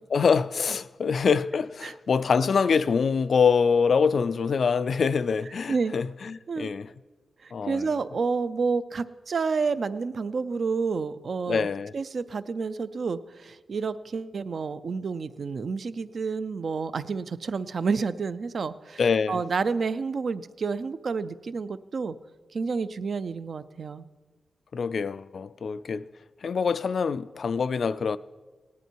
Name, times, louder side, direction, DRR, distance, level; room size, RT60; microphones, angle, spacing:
voice 1, 0.1-6.9 7.5-7.9 11.5-11.9 19.0-19.4 24.7-26.1 26.4-28.2, left 5 dB, 60° left, 0.3 m, -25 dB
voice 2, 7.4-11.7 11.9-19.0 19.3-22.2 22.5-24.1, right 4 dB, 55° right, 0.4 m, -29 dB
17.5 x 11.0 x 4.6 m
wide cardioid pair, 170°, 0 cm